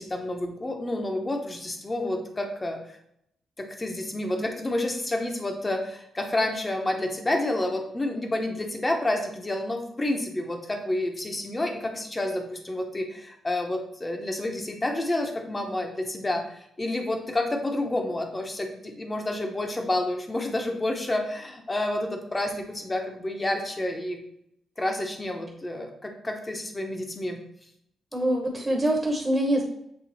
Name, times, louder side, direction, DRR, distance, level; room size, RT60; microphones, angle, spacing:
voice 1, 0.0-2.8 3.6-24.2 24.8-27.4, left 1 dB, 15° left, 4 dB, 0.9 m, -29 dB
voice 2, 28.1-29.6, right 1 dB, 10° right, -1 dB, 1.0 m, -24 dB
7.6 x 3.6 x 4.1 m, 0.75 s
wide cardioid pair, 165°, 0 cm